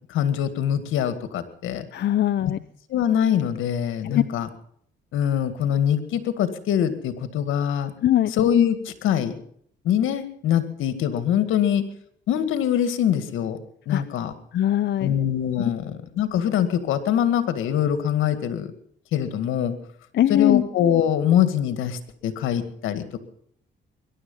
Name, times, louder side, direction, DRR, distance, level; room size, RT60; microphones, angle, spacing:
voice 1, 0.1-1.9 2.9-4.5 5.1-7.9 8.3-9.3 9.8-11.8 12.3-14.3 15.0-18.7 19.1-19.8 20.3-23.2, left 9 dB, 85° left, 11 dB, 2.0 m, -23 dB
voice 2, 1.9-2.6 4.0-4.2 8.0-8.3 13.9-14.0 14.5-15.1 15.6-15.7 20.1-20.6, left 12 dB, 60° left, 11 dB, 0.6 m, -21 dB
22.0 x 11.5 x 5.6 m, 0.64 s
cardioid pair, 90°, 20 cm